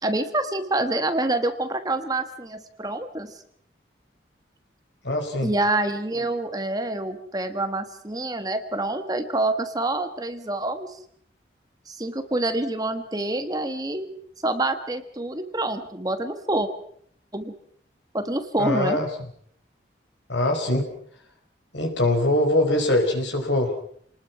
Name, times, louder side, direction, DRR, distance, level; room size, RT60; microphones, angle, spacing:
voice 1, 0.0-3.3 5.4-11.0 11.9-14.1 14.4-16.7 17.3-17.5 18.1-19.0, right 2 dB, 20° right, 8 dB, 1.5 m, -27 dB
voice 2, 5.0-5.5 18.6-19.1 20.3-20.9 21.7-23.7, left 1 dB, 80° left, 4 dB, 5.0 m, -22 dB
28.5 x 19.5 x 5.9 m, 0.64 s
head